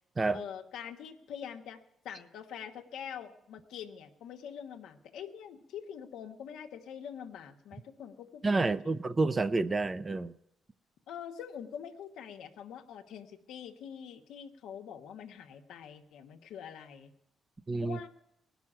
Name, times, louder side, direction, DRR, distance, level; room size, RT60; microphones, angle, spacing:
voice 1, 0.3-1.8 2.0-8.9 11.1-17.1 17.8-18.1, left 8 dB, 85° left, 5 dB, 1.2 m, -45 dB
voice 2, 8.4-10.3 17.7-18.0, right 3 dB, 25° right, 13 dB, 0.6 m, -29 dB
18.0 x 6.1 x 9.9 m, 0.81 s
cardioid pair, 90°, 0 cm